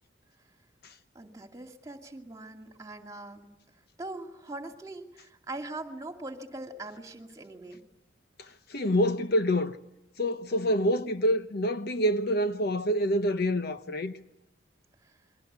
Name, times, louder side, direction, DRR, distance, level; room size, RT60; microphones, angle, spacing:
voice 1, 1.1-3.5 4.0-7.8 15.0-15.1, right 2 dB, 15° right, 2.4 m, -41 dB
voice 2, 8.7-9.8 10.2-14.1, equal, 50° left, 1.0 m, -26 dB
29.5 x 22.5 x 8.2 m
head